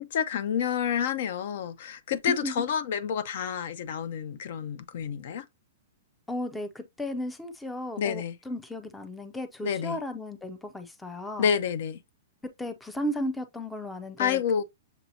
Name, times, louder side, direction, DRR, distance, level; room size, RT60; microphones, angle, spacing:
voice 1, 0.0-5.5 8.0-8.3 9.6-10.0 11.4-12.0 14.2-14.6, left 8 dB, 55° left, 0.6 m, -29 dB
voice 2, 6.3-11.5 12.6-14.4, left 1 dB, 5° left, 0.5 m, -35 dB
6.9 x 2.8 x 2.7 m
hypercardioid pair, 160°, 0 cm